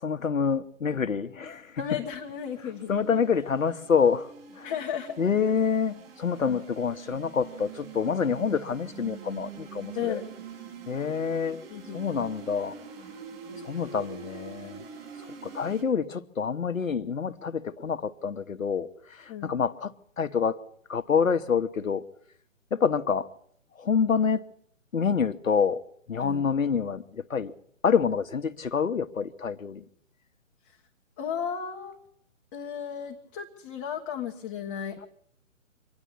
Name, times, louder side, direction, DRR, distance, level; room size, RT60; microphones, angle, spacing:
voice 1, 0.0-1.9 2.9-4.3 4.6-4.7 5.2-10.2 10.9-11.6 11.9-12.8 13.6-14.8 15.4-20.6 20.9-22.0 22.7-23.3 23.8-24.4 24.9-25.8 26.1-27.5 27.8-29.8, left 6 dB, 80° left, 1.1 m, -27 dB
sound 1, 1.5-15.8, right 6 dB, 50° right, 6.3 m, -45 dB
voice 2, 1.8-2.9 4.6-5.2 6.5-6.6 9.9-10.3 11.7-12.2 13.5-13.7 19.3-19.5 26.2-26.4 30.6-30.8 31.2-32.0 32.5-35.1, left 8 dB, 20° left, 1.1 m, -34 dB
25.0 x 10.5 x 9.9 m
figure-of-eight pair, 140°, 39 cm